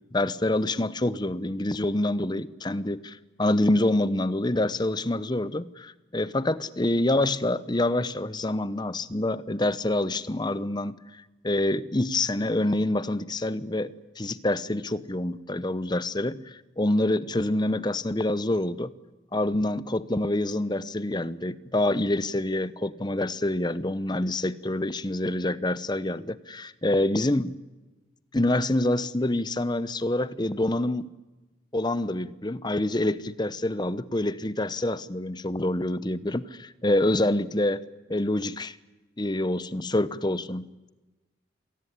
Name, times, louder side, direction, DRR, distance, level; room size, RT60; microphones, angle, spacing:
voice 1, 0.0-13.9 14.2-18.9 19.3-27.5 28.3-31.1 31.7-37.8 38.1-38.8 39.2-40.7, left 1 dB, 20° left, 16 dB, 0.8 m, -26 dB
26.5 x 19.0 x 10.0 m, 1.1 s
head